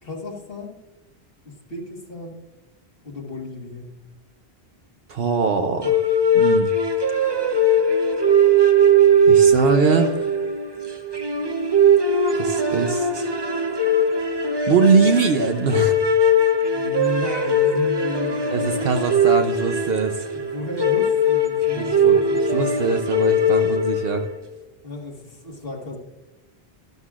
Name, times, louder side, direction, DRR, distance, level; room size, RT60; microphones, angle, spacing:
voice 1, 0.0-0.8 1.5-2.4 3.0-3.9 16.7-18.6 20.3-22.7 24.8-26.0, left 2 dB, 60° left, 1 dB, 1.9 m, -33 dB
voice 2, 5.1-6.0 6.3-6.7 9.3-10.4 12.3-13.3 14.7-15.9 18.5-20.3 21.8-24.3, right 4 dB, 65° right, 5 dB, 0.9 m, -22 dB
sound 1, 5.8-24.3, right 1 dB, 30° right, 0.7 m, -20 dB
13.0 x 12.0 x 2.4 m, 1.1 s
omnidirectional pair, 1.1 m